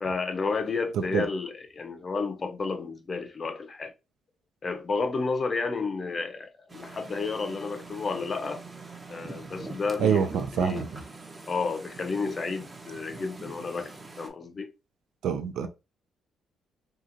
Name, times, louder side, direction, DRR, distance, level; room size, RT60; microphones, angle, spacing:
voice 1, 0.0-3.9 4.6-8.6 9.1-10.2 10.5-10.8 11.5-14.7, left 4 dB, 35° left, 0.5 m, -31 dB
voice 2, 0.9-1.3 10.0-11.0 15.2-15.7, right 7 dB, 80° right, 0.4 m, -26 dB
sound 1, 6.7-14.3, right 3 dB, 25° right, 0.6 m, -44 dB
2.8 x 2.4 x 2.5 m
cardioid pair, 90°, 0 cm